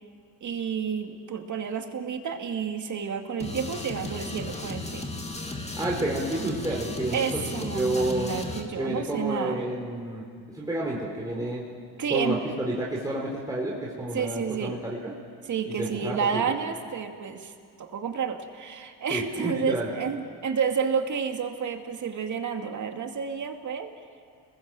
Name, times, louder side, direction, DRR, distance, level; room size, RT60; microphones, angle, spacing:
voice 1, 0.4-5.1 7.1-9.6 12.0-12.6 14.1-14.8 15.4-17.5 17.8-23.9, right 6 dB, 40° right, 5 dB, 2.4 m, -30 dB
sound 1, 3.4-8.6, left 2 dB, 15° left, 2.7 m, -35 dB
voice 2, 5.7-8.3 8.8-10.3 10.5-11.6 12.1-15.0 15.8-16.2 19.1-19.9, right 1 dB, 10° right, -4 dB, 4.0 m, -30 dB
30.0 x 21.0 x 7.8 m, 2.2 s
cardioid pair, 110°, 44 cm